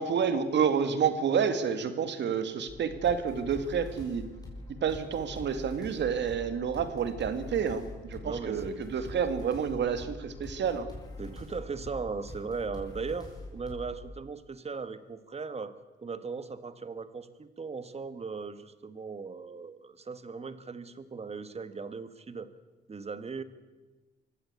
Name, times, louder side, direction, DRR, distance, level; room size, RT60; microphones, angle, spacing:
voice 1, 0.0-4.3 4.8-10.9, right 7 dB, 65° right, 9 dB, 2.3 m, -29 dB
sound 1, 2.7-14.0, left 2 dB, 20° left, 7.0 m, -44 dB
voice 2, 8.2-9.2 11.2-15.7 16.0-22.5 22.9-23.4, right 4 dB, 30° right, 12 dB, 1.7 m, -38 dB
24.0 x 16.0 x 8.4 m, 1.2 s
cardioid pair, 90°, 20 cm